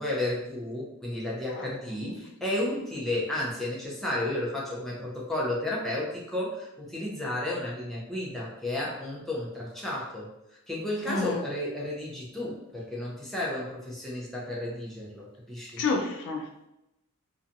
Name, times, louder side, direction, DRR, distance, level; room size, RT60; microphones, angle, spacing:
voice 1, 0.0-15.8, left 1 dB, ahead, 0.5 m, -32 dB
voice 2, 11.1-11.4 15.8-16.7, left 3 dB, 55° left, 0.3 m, -30 dB
2.6 x 2.3 x 2.5 m
head